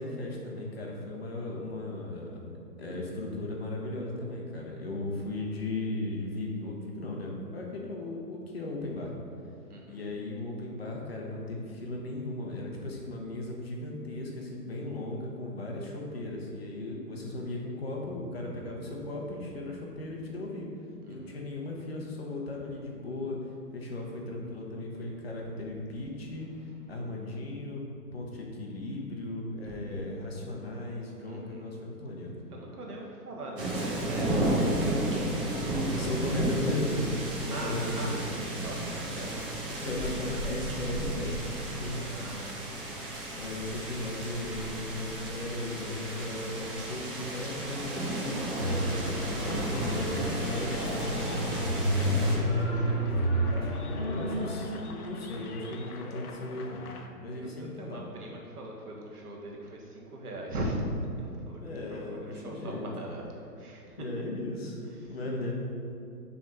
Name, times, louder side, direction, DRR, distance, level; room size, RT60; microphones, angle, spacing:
voice 1, 0.0-2.5 2.8-9.1 9.9-20.7 21.1-26.5 26.9-32.3 36.0-38.1 39.7-42.3 43.4-49.4 49.9-52.6 54.1-56.9 57.2-58.0 61.6-62.9 64.0-65.5, left 2 dB, 40° left, -1 dB, 0.9 m, -36 dB
voice 2, 21.0-21.4 29.7-29.8 31.2-31.7 32.5-36.5 37.5-39.7 41.9-43.0 52.0-53.0 57.3-60.8 61.1-63.2 63.6-64.1 65.0-65.1, right 1 dB, 70° right, -1 dB, 1.5 m, -41 dB
sound 1, 33.6-52.4, right 1 dB, 35° right, 1.0 m, -33 dB
sound 2, 48.6-54.8, equal, 15° left, 1.1 m, -30 dB
sound 3, 49.4-57.1, left 4 dB, 65° left, 0.8 m, -46 dB
6.1 x 3.5 x 5.2 m, 2.5 s
hypercardioid pair, 175°, 48 cm